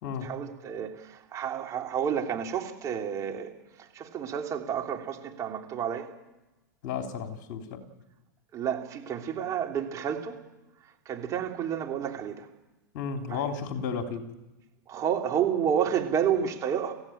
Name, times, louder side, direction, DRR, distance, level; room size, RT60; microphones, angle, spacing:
voice 1, 0.2-3.5 3.9-6.1 8.5-10.4 11.0-12.5 13.3-13.5 14.9-16.9, right 8 dB, 30° right, 3 dB, 3.2 m, -30 dB
voice 2, 6.8-7.8 12.9-14.3, left 6 dB, 50° left, 4 dB, 3.4 m, -33 dB
24.0 x 16.0 x 9.1 m, 1.0 s
hypercardioid pair, 105°, 10 cm